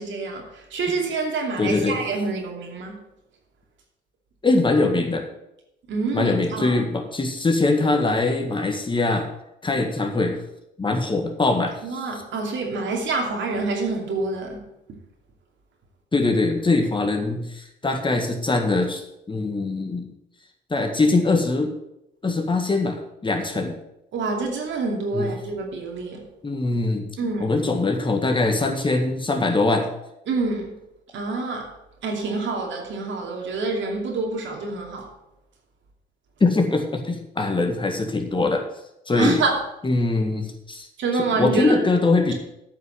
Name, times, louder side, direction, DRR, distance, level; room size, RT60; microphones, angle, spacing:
voice 1, 0.0-3.0 5.9-6.8 11.8-14.6 24.1-26.2 27.2-27.5 30.3-30.8 31.1-31.7 32.0-35.1 39.1-39.6 41.0-41.8, right 3 dB, 70° right, 2.6 m, -27 dB
voice 2, 1.6-2.0 4.4-5.3 6.1-9.3 9.6-10.4 10.8-12.0 16.1-20.1 20.7-21.7 22.2-23.8 25.1-25.3 26.4-27.1 27.4-29.9 36.4-38.6 39.1-39.4 39.8-40.9 41.1-42.3, left 3 dB, 25° left, 1.8 m, -22 dB
9.3 x 5.7 x 7.8 m
cardioid pair, 90°, 20 cm